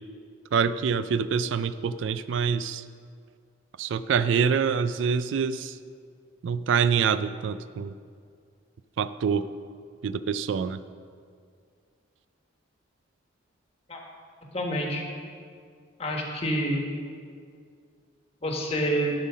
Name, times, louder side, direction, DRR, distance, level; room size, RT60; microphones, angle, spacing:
voice 1, 0.5-2.8 3.8-5.8 6.4-7.9 9.0-9.5 10.0-10.8, right 6 dB, 70° right, 14 dB, 0.3 m, -25 dB
voice 2, 14.5-15.0 16.0-16.8 18.4-19.1, equal, 30° left, 0 dB, 1.4 m, -27 dB
12.0 x 5.6 x 6.2 m, 2.2 s
head